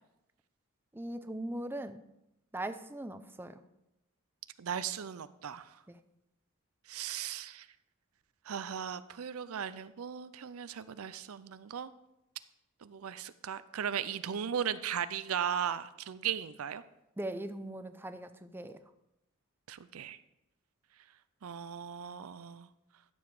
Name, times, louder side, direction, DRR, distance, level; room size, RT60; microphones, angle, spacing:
voice 1, 0.9-2.0 2.5-3.6 5.9-6.0 17.2-18.8, right 1 dB, 10° right, 9 dB, 0.5 m, -40 dB
voice 2, 4.6-5.8 6.9-7.7 8.5-11.9 12.8-16.8 19.7-20.2 21.4-22.7, right 8 dB, 80° right, 14 dB, 0.5 m, -37 dB
12.0 x 7.1 x 4.8 m, 0.87 s
head